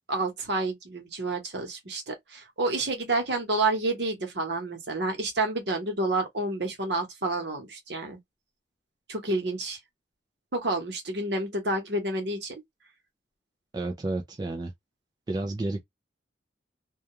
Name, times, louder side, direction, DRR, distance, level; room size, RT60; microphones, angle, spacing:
voice 1, 0.1-8.2 9.1-9.8 10.5-12.6, right 2 dB, 65° right, 0.9 m, -29 dB
voice 2, 13.7-14.7 15.3-15.8, right 2 dB, 20° right, 0.3 m, -31 dB
2.3 x 2.2 x 2.8 m
head